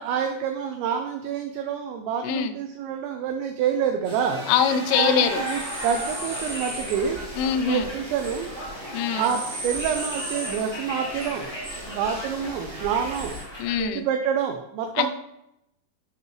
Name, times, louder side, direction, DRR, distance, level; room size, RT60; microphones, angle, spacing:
voice 1, 0.0-4.4 5.0-7.2 7.6-8.5 9.1-11.5 11.9-13.4 13.8-15.1, right 8 dB, 80° right, 4 dB, 2.7 m, -27 dB
voice 2, 2.2-2.5 4.5-5.4 7.4-7.9 8.9-9.3 13.6-14.1 15.0-15.1, left 8 dB, 80° left, 10 dB, 2.9 m, -23 dB
sound 1, 4.0-13.4, right 1 dB, 40° right, 0.9 m, -35 dB
Conversation, 5.2-13.8, equal, 40° left, 0.8 m, -38 dB
10.5 x 5.2 x 3.1 m, 0.82 s
omnidirectional pair, 5.7 m